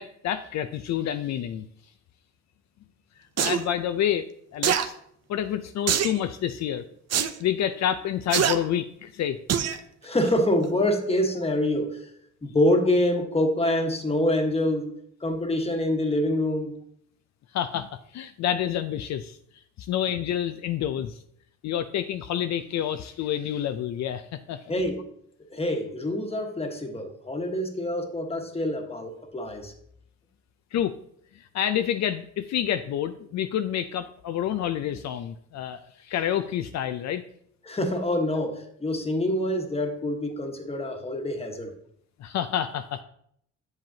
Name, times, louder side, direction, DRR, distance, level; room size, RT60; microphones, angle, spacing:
voice 1, 0.0-1.6 3.4-4.3 4.5-5.0 5.3-6.8 7.4-9.4 17.5-21.2 21.6-24.7 30.7-30.9 31.4-37.2 42.2-43.0, left 10 dB, 65° left, 9 dB, 0.5 m, -28 dB
sound 1, 3.4-3.6 4.6-4.9 5.9-6.2 7.1-7.3 8.3-8.6 9.5-9.8 10.2-10.3, right 9 dB, 60° right, 0.7 m, -23 dB
voice 2, 10.0-12.1 12.4-16.8 24.7-25.1 25.5-29.7 37.6-41.7, left 1 dB, 20° left, 4 dB, 1.3 m, -26 dB
7.8 x 7.2 x 2.8 m, 0.70 s
cardioid pair, 90°, 30 cm